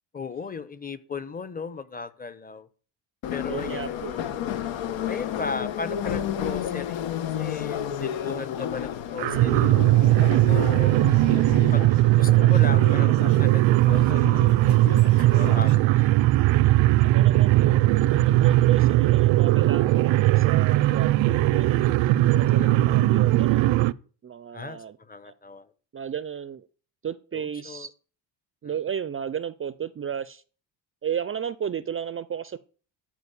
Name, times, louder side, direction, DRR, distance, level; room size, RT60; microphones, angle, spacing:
voice 1, 0.1-2.7 3.3-4.0 5.1-9.9 10.5-11.0 11.7-14.9 15.2-16.1 22.5-23.0 24.5-25.7 27.3-27.9 28.6-28.8, left 4 dB, 20° left, 0.9 m, -37 dB
Subway metro underground, 3.2-15.7, left 9 dB, 80° left, 1.4 m, -32 dB
voice 2, 3.5-4.2 17.0-17.8 18.1-21.8 22.5-23.9 24.2-25.0 25.3-25.4 25.9-26.7 27.0-27.9 28.6-30.4 31.0-32.6, right 8 dB, 30° right, 0.5 m, -33 dB
sound 1, 9.2-23.9, right 16 dB, 80° right, 0.6 m, -19 dB
12.5 x 5.1 x 8.3 m
cardioid pair, 125°, 45 cm